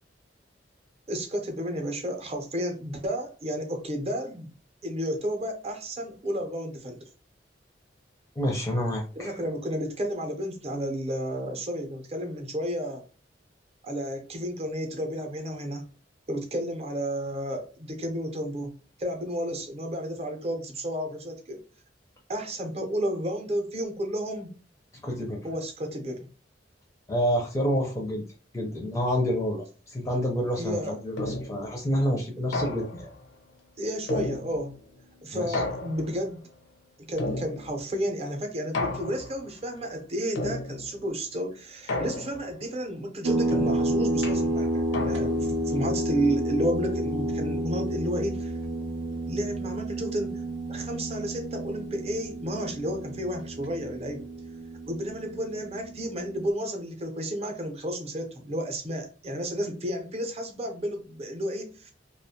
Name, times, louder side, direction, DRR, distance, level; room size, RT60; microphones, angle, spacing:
voice 1, 1.1-4.5 4.8-7.1 9.2-13.0 13.8-15.9 16.3-21.6 22.3-24.6 25.4-26.3 30.6-31.0 33.8-34.8 35.2-36.4 37.1-48.5 49.3-50.4 50.7-54.3 54.9-61.9, equal, 35° right, 4 dB, 0.6 m, -32 dB
voice 2, 8.4-9.3 25.0-25.4 27.1-28.2 28.5-33.1 35.3-35.6, equal, 15° left, 1 dB, 0.4 m, -28 dB
sound 1, 31.2-31.7 32.5-33.2 34.1-34.8 35.5-36.3 37.2-37.9 38.7-39.5 40.4-41.0 41.9-42.6 43.5-45.5, left 2 dB, 80° left, 0.5 m, -33 dB
sound 2, 43.2-56.3, right 1 dB, 80° right, 0.5 m, -30 dB
2.4 x 2.2 x 2.7 m, 0.37 s
head